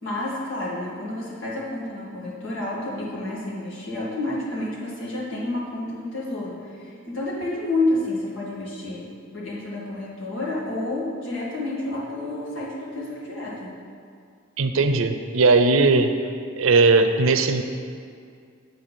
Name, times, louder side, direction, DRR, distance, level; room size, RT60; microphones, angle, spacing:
voice 1, 0.0-9.1 9.3-13.7, left 2 dB, 70° left, -6 dB, 2.0 m, -29 dB
voice 2, 14.6-16.2 16.6-17.6, right 3 dB, 85° right, 8 dB, 0.5 m, -18 dB
8.2 x 4.2 x 6.2 m, 2.2 s
head